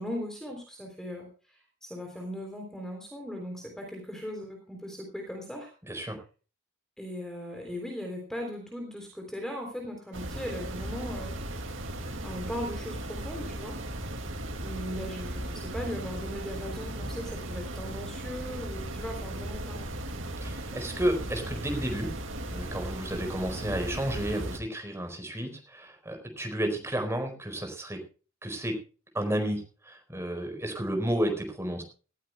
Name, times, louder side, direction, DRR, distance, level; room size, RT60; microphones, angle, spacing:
voice 1, 0.0-5.7 7.0-11.4 12.2-13.8 14.6-19.9, equal, 5° left, 2 dB, 3.6 m, -38 dB
voice 2, 5.8-6.2 20.4-22.1 22.5-28.0 28.4-28.8 29.1-31.8, right 1 dB, 15° right, 4 dB, 4.5 m, -32 dB
sound 1, 10.1-24.6, right 1 dB, 75° right, 2.4 m, -37 dB
19.0 x 15.0 x 2.3 m, 0.37 s
head